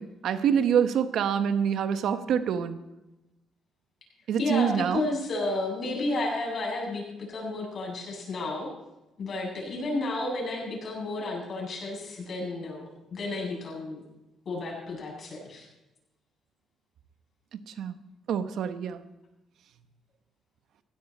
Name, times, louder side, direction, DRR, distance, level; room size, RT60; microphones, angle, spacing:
voice 1, 0.0-2.8 4.3-5.0 17.5-17.9 18.3-19.0, right 8 dB, 70° right, 10 dB, 1.0 m, -26 dB
voice 2, 4.4-8.7 9.2-14.0 14.4-15.7, left 2 dB, 50° left, -1 dB, 7.9 m, -32 dB
16.5 x 16.5 x 4.4 m, 0.97 s
cardioid pair, 90°, 0 cm